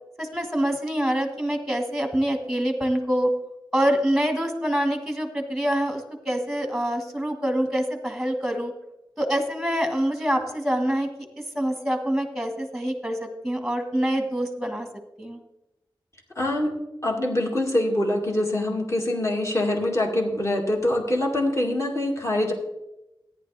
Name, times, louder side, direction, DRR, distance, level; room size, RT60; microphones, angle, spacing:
voice 1, 0.2-3.3 3.7-8.7 9.2-11.1 11.3-14.9 15.2-15.4, equal, ahead, 4 dB, 1.5 m, -25 dB
voice 2, 16.4-16.7 17.0-22.5, left 1 dB, 35° left, 0 dB, 2.0 m, -24 dB
14.0 x 10.0 x 3.3 m, 0.95 s
wide cardioid pair, 110°, 9 cm